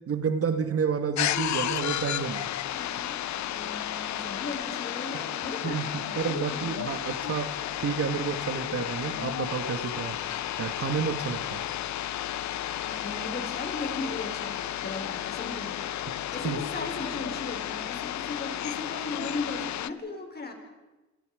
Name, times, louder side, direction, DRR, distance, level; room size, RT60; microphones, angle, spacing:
voice 1, 0.0-2.5 5.1-5.3 5.6-10.2 10.6-11.6 16.4-16.6, right 6 dB, 50° right, 9 dB, 1.9 m, -30 dB
sound 1, 1.2-19.9, left 12 dB, 65° left, 0.9 m, -33 dB
voice 2, 2.7-7.0 10.1-10.5 12.8-15.9 16.3-20.5, left 3 dB, 30° left, 4 dB, 5.2 m, -37 dB
27.5 x 27.5 x 5.1 m, 1.1 s
cardioid pair, 90°, 30 cm